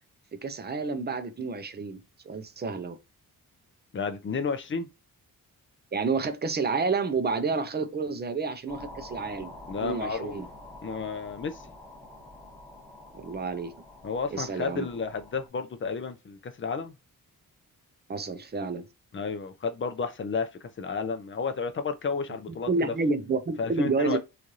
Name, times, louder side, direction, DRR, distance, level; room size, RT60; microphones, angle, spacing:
voice 1, 0.3-2.0 2.2-3.0 5.9-9.5 9.8-10.5 13.1-13.7 14.3-14.8 18.1-18.9 22.5-24.2, right 4 dB, 30° right, 0.4 m, -29 dB
voice 2, 3.9-4.9 9.7-10.4 10.8-11.6 14.0-16.9 19.1-22.7 23.6-24.2, left 5 dB, 35° left, 0.4 m, -32 dB
sound 1, 8.7-15.5, left 2 dB, 10° left, 1.1 m, -47 dB
3.1 x 2.4 x 2.6 m
wide cardioid pair, 180°, 36 cm